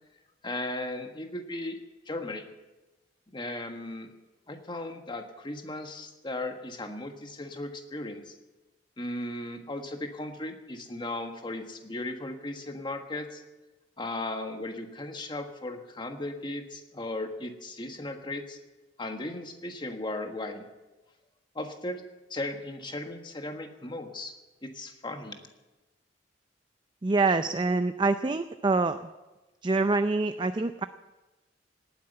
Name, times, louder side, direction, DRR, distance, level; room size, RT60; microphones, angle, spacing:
voice 1, 0.4-1.8 2.1-2.5 3.3-4.1 4.5-8.3 9.0-13.4 14.0-18.6 19.0-20.7 21.5-22.0 22.3-24.3 24.6-25.4, left 2 dB, 25° left, 5 dB, 1.5 m, -36 dB
voice 2, 27.0-29.0 29.6-30.8, right 3 dB, 25° right, 10 dB, 0.5 m, -25 dB
18.0 x 9.6 x 7.9 m, 1.1 s
head